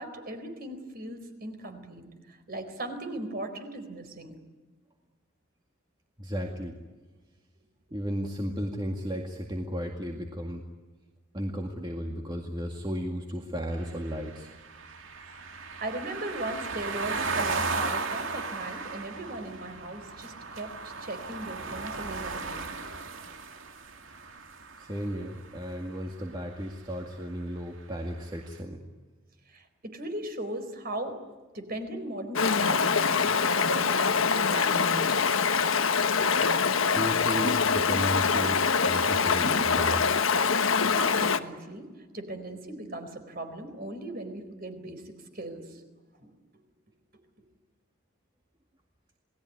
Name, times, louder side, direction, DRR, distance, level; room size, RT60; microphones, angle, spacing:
voice 1, 0.0-4.4 15.8-22.7 29.5-31.2 31.5-33.1 33.5-35.2 40.9-45.8 46.2-46.3, right 1 dB, 45° right, 8 dB, 4.3 m, -38 dB
voice 2, 6.2-6.8 7.9-10.6 11.3-14.5 24.8-28.8 36.9-40.1, equal, 20° right, 2 dB, 2.1 m, -34 dB
sound 1, 13.7-25.8, right 4 dB, 65° right, 2.5 m, -36 dB
Stream, 32.3-41.4, left 5 dB, 75° left, 1.4 m, -24 dB
29.0 x 19.5 x 9.6 m, 1.3 s
head